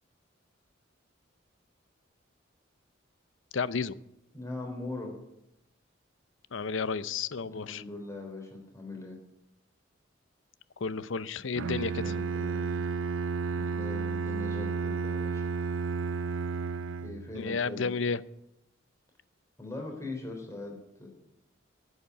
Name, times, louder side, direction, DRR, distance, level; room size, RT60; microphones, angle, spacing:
voice 1, 3.5-4.0 6.5-7.8 10.8-12.2 17.3-18.2, left 5 dB, 75° left, 17 dB, 0.6 m, -32 dB
voice 2, 4.3-5.2 7.4-9.2 12.0-12.8 13.5-15.5 17.0-17.9 19.6-21.1, left 2 dB, 15° left, 1 dB, 3.6 m, -41 dB
Bowed string instrument, 11.6-17.4, right 5 dB, 85° right, 0.5 m, -32 dB
11.5 x 8.2 x 9.8 m, 0.84 s
head